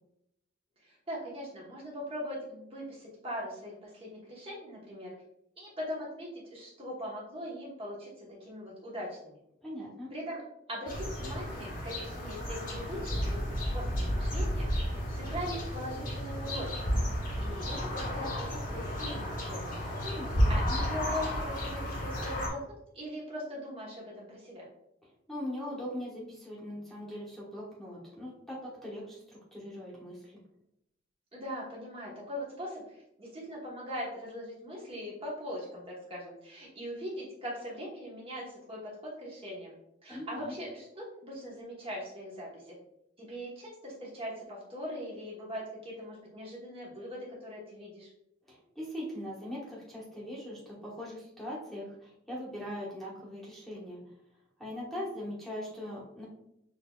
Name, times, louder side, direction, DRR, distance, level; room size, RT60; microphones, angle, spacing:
voice 1, 0.8-5.1 5.6-9.4 10.1-10.4 10.7-16.7 17.4-19.8 20.5-22.6 22.9-24.7 31.3-39.8 40.0-42.8 43.2-48.1, equal, 30° right, -5 dB, 1.1 m, -41 dB
voice 2, 9.6-10.1 20.0-20.8 25.3-30.4 40.1-40.5 48.5-54.0 54.6-56.2, left 1 dB, ahead, -6 dB, 1.2 m, -41 dB
sound 1, 10.9-22.5, equal, 50° left, 1.1 m, -32 dB
6.5 x 2.7 x 2.3 m, 0.80 s
head